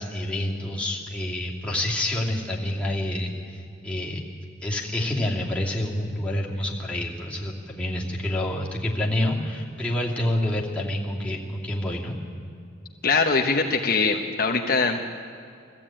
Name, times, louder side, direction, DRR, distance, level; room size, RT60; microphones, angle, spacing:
voice 1, 0.0-4.2 4.6-12.2, left 1 dB, 5° left, -5 dB, 2.6 m, -28 dB
voice 2, 13.0-15.1, left 4 dB, 50° left, 2 dB, 1.1 m, -22 dB
21.5 x 14.5 x 8.9 m, 2.4 s
head